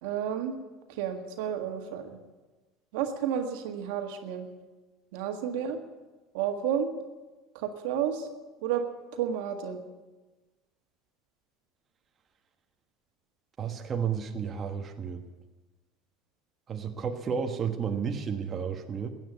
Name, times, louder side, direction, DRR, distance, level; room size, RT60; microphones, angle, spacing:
voice 1, 0.0-0.6 0.9-2.2 2.9-4.5 5.1-5.8 6.3-6.9 7.6-8.3 8.6-8.9 9.1-9.8, right 8 dB, 85° right, 5 dB, 1.7 m, -31 dB
voice 2, 13.6-15.2 16.7-19.1, right 7 dB, 30° right, 4 dB, 1.3 m, -32 dB
15.0 x 9.2 x 8.3 m, 1.2 s
supercardioid pair, 120°, 0 cm